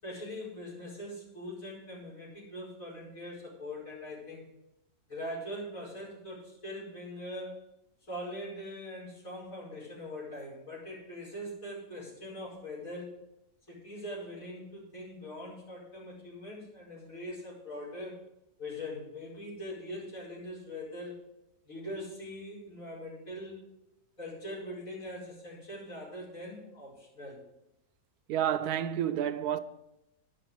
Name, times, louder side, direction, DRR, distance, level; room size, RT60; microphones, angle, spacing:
voice 1, 0.0-4.5 5.1-7.6 8.1-13.1 13.7-18.1 18.6-21.2 21.6-23.6 24.2-27.4, left 1 dB, 60° left, 5.5 m, -42 dB
voice 2, 28.3-29.6, right 10 dB, 90° right, 1.2 m, -29 dB
10.0 x 5.9 x 8.0 m
omnidirectional pair, 1.6 m